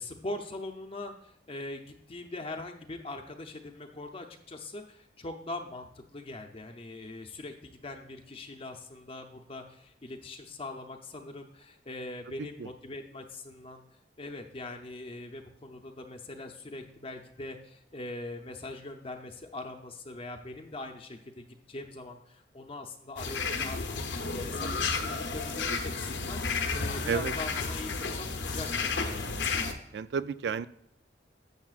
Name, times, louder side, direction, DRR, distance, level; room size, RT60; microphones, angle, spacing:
voice 1, 0.0-13.8 14.2-29.0, left 2 dB, 35° left, 4 dB, 0.6 m, -42 dB
voice 2, 12.4-12.7 27.1-27.3 29.9-30.7, right 6 dB, 70° right, 16 dB, 0.4 m, -32 dB
sound 1, 23.2-29.7, left 4 dB, 80° left, 0.9 m, -32 dB
12.0 x 7.2 x 2.4 m, 0.78 s
head